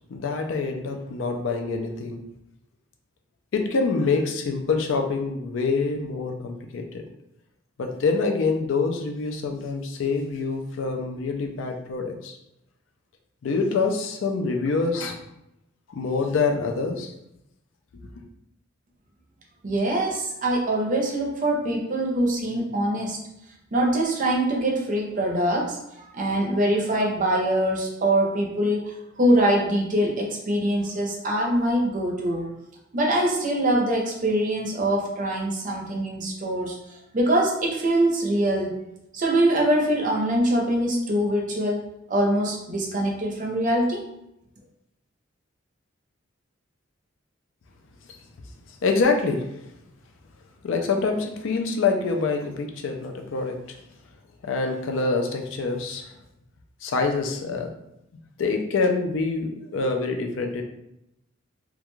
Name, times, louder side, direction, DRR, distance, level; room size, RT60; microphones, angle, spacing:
voice 1, 0.1-2.2 3.5-7.0 7.8-12.4 13.4-15.2 15.9-17.1 48.1-48.2 48.8-49.4 50.6-53.8 54.4-56.1 56.8-57.7 58.4-60.6, left 4 dB, 70° left, 4 dB, 0.4 m, -26 dB
voice 2, 19.6-23.2 23.7-32.5 32.9-36.7 37.1-38.8 39.1-44.0, right 1 dB, 40° right, 0 dB, 0.6 m, -23 dB
2.4 x 2.2 x 3.0 m, 0.83 s
head